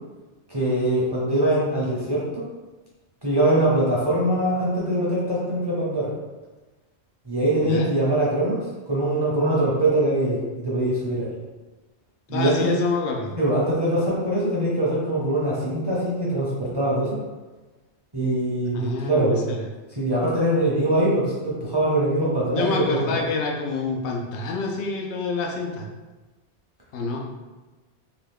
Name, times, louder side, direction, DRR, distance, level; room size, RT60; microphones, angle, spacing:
voice 1, 0.5-2.4 3.2-6.1 7.2-11.3 12.3-12.7 13.4-17.1 18.1-19.4 20.0-23.1, right 1 dB, 30° right, -7 dB, 0.5 m, -23 dB
voice 2, 12.3-13.3 18.7-19.6 22.2-25.9 26.9-27.2, left 3 dB, 85° left, 0 dB, 0.9 m, -27 dB
2.9 x 2.3 x 3.4 m, 1.2 s
omnidirectional pair, 1.1 m